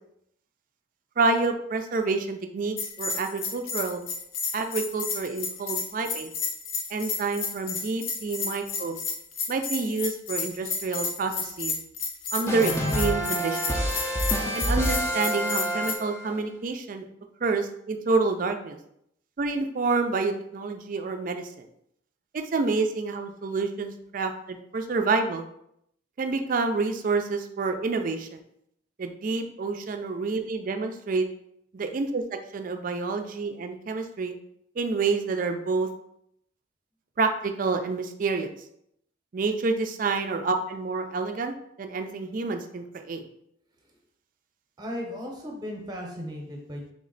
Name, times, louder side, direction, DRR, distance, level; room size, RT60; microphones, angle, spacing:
voice 1, 1.2-4.0 4.5-6.3 6.9-9.0 9.5-11.8 12.3-13.8 14.5-17.1 17.4-18.8 19.4-21.7 22.3-25.4 26.2-28.4 29.0-31.3 31.7-34.3 34.8-35.9 37.2-38.5 39.3-43.2, right 3 dB, 45° right, 6 dB, 0.4 m, -28 dB
Bell, 2.8-15.9, left 5 dB, 85° left, 0.6 m, -32 dB
sound 1, 12.5-16.3, right 1 dB, 15° left, 0.5 m, -27 dB
voice 2, 44.8-46.9, equal, 20° right, 1 dB, 0.8 m, -36 dB
3.5 x 3.1 x 3.9 m, 0.75 s
head